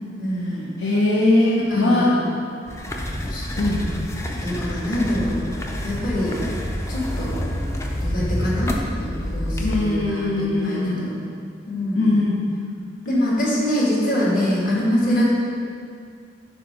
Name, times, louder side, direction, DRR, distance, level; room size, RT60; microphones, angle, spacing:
voice 1, 0.2-0.7 1.7-2.1 3.3-4.0 4.4-5.4 5.8-6.4 6.9-7.4 8.0-11.1 11.7-12.1 13.0-15.2, left 1 dB, 50° left, -6 dB, 1.7 m, -24 dB
voice 2, 0.8-2.2 3.6-3.8 9.6-11.1 11.9-12.5 15.1-15.2, left 2 dB, 70° left, -6 dB, 0.8 m, -20 dB
sound 1, 2.7-9.8, equal, 15° left, 0.5 m, -27 dB
8.2 x 2.8 x 5.6 m, 2.3 s
head